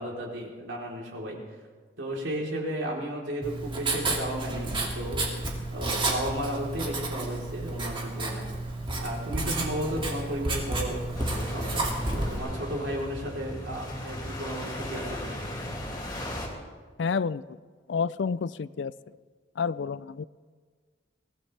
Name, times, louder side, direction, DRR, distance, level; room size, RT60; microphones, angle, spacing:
voice 1, 0.0-1.4 2.0-5.3 5.7-8.5 9.0-11.0 11.3-15.4, right 1 dB, 75° right, -2 dB, 3.7 m, -34 dB
Writing, 3.4-12.4, right 2 dB, 25° right, 2.4 m, -31 dB
sound 1, 11.1-16.5, left 1 dB, 20° left, 2.5 m, -37 dB
voice 2, 17.0-17.6 17.9-18.9 19.6-20.2, left 5 dB, 65° left, 18 dB, 0.4 m, -29 dB
23.0 x 17.0 x 3.4 m, 1.5 s
head